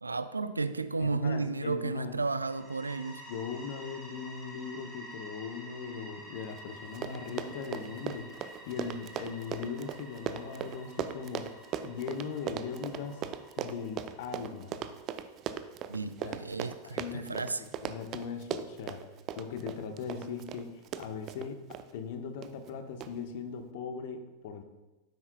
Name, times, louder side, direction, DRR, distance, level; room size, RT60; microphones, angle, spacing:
voice 1, 0.0-3.2 15.9-17.6, right 3 dB, 80° right, 13 dB, 0.4 m, -33 dB
voice 2, 1.0-2.1 3.3-11.5 11.8-13.2 13.6-14.8 16.2-16.4 16.8-19.0 19.4-21.6 21.9-24.6, left 6 dB, 50° left, 7 dB, 1.0 m, -39 dB
sound 1, 2.4-15.1, equal, 5° right, 2.7 m, -50 dB
Run, 6.6-6.7 6.9-21.9 22.4-22.7 23.0-23.1, right 9 dB, 35° right, 0.5 m, -38 dB
12.0 x 9.6 x 2.3 m, 1.1 s
figure-of-eight pair, 90°, 0 cm